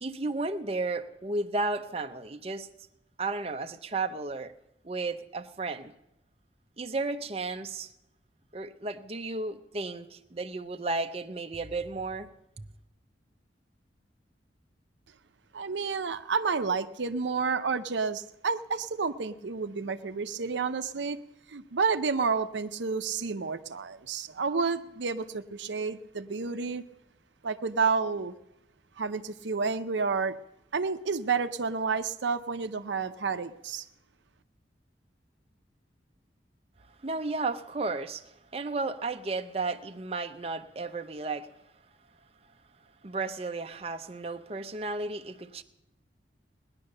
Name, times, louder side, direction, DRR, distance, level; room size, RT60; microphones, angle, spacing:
voice 1, 0.0-2.7 3.2-4.5 4.8-5.9 6.8-7.9 8.5-12.3 12.6-12.7 37.0-41.5 43.0-45.6, right 3 dB, 35° right, 0.6 m, -33 dB
voice 2, 15.5-21.2 21.5-26.8 27.4-28.4 29.0-30.4 30.7-33.8, right 5 dB, 85° right, 0.7 m, -30 dB
18.5 x 10.5 x 6.6 m
head